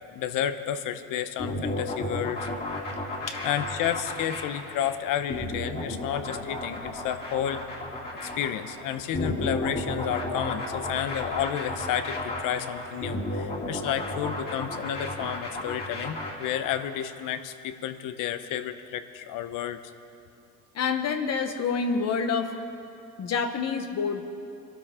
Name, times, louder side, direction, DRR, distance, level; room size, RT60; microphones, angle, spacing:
voice 1, 0.0-2.5 3.4-7.6 8.2-19.8, left 10 dB, 70° left, 11 dB, 0.8 m, -31 dB
sound 1, 1.4-16.8, left 1 dB, 30° left, 2.9 m, -33 dB
voice 2, 20.7-22.5 23.2-24.2, left 5 dB, 50° left, 6 dB, 1.2 m, -27 dB
22.5 x 12.5 x 3.7 m, 2.6 s
cardioid pair, 105°, 33 cm